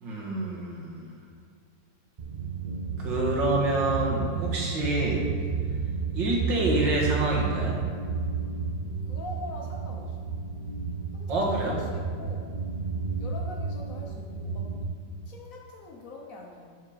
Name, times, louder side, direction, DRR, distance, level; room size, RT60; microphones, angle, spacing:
voice 1, 0.0-1.1 3.0-5.2 6.1-7.8 11.3-11.8, right 2 dB, 85° right, -3 dB, 2.3 m, -27 dB
sound 1, 2.2-14.8, right 5 dB, 45° right, 0.6 m, -32 dB
voice 2, 9.1-10.3 11.1-12.6 13.2-14.8 15.3-16.8, left 2 dB, 55° left, 0 dB, 1.3 m, -43 dB
11.0 x 4.8 x 5.0 m, 2.2 s
omnidirectional pair, 2.0 m